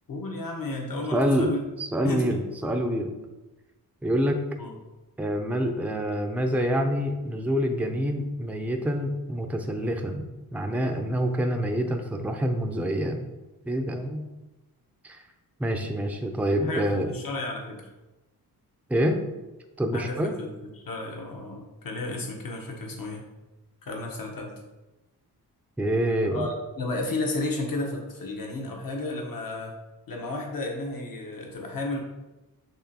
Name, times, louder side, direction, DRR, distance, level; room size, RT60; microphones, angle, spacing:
voice 1, 0.1-1.6 2.0-2.4 4.6-4.8 16.6-17.8 19.9-23.3 23.8-24.5 26.2-29.7 30.1-32.0, left 2 dB, 60° left, 0 dB, 1.1 m, -33 dB
voice 2, 1.1-1.5 1.8-3.1 4.0-4.4 5.2-10.3 10.5-13.3 13.7-14.3 15.0-15.2 15.6-17.1 18.9-19.2 19.8-20.3 25.8-26.5, equal, 5° right, 4 dB, 0.5 m, -26 dB
5.9 x 3.0 x 2.9 m, 1.1 s
cardioid pair, 55°, 38 cm